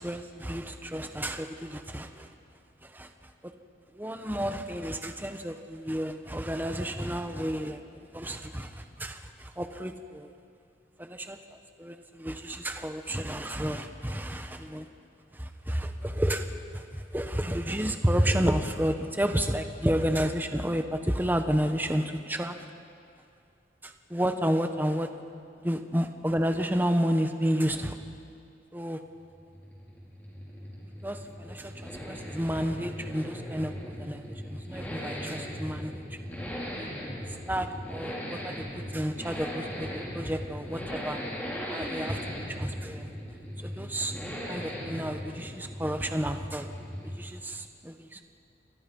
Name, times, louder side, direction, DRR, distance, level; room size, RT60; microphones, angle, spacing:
voice 1, 0.0-2.3 2.8-3.1 3.9-7.8 8.1-10.3 11.0-14.9 15.3-22.6 23.8-25.1 25.6-28.0 28.7-29.0 31.0-36.0 36.8-36.9 37.3-41.2 41.7-43.1 43.6-44.1 44.5-46.7 47.2-48.2, equal, 10° right, 6 dB, 1.2 m, -31 dB
Accelerating revving vroom, 29.2-47.4 47.6-47.7, equal, 10° left, 4.5 m, -38 dB
29.0 x 24.0 x 5.5 m, 2.4 s
head